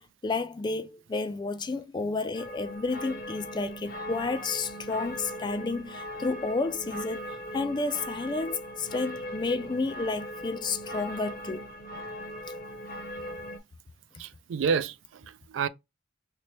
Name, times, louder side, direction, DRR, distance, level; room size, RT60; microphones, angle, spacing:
voice 1, 0.0-11.7, left 3 dB, 20° left, 0.3 m, -31 dB
sound 1, 2.3-13.6, equal, 45° left, 0.7 m, -39 dB
voice 2, 14.2-15.7, right 6 dB, 70° right, 0.3 m, -29 dB
3.0 x 2.9 x 3.1 m
head